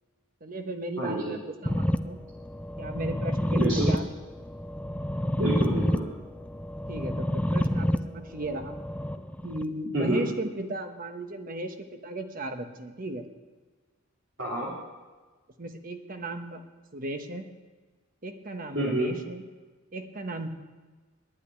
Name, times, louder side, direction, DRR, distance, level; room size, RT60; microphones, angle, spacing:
voice 1, 0.4-2.2 2.8-4.0 6.9-8.8 9.4-13.2 15.6-16.6 16.9-17.5 18.2-19.4 19.9-20.5, right 1 dB, 45° right, 6 dB, 1.1 m, -36 dB
voice 2, 1.0-1.3 3.5-3.9 5.4-6.1 9.9-10.2 14.4-14.7 18.7-19.1, right 1 dB, 75° right, -5 dB, 3.2 m, -28 dB
sound 1, 1.7-9.6, equal, 5° left, 0.4 m, -29 dB
10.0 x 9.3 x 9.9 m, 1.3 s
head